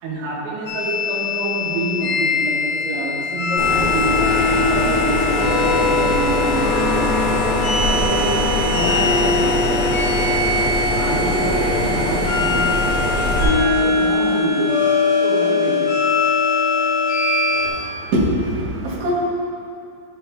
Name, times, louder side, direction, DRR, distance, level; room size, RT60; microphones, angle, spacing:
voice 1, 0.0-4.2 4.5-7.1 7.4-9.9 10.9-14.7 15.2-15.9, right 2 dB, 80° right, -5 dB, 3.7 m, -27 dB
sound 1, 0.7-17.7, left 3 dB, 90° left, 3.7 m, -21 dB
sound 2, 3.6-13.4, left 1 dB, 45° left, 0.8 m, -22 dB
voice 2, 17.5-19.1, equal, 60° right, -6 dB, 2.4 m, -23 dB
12.5 x 5.4 x 3.5 m, 2.4 s
omnidirectional pair, 5.2 m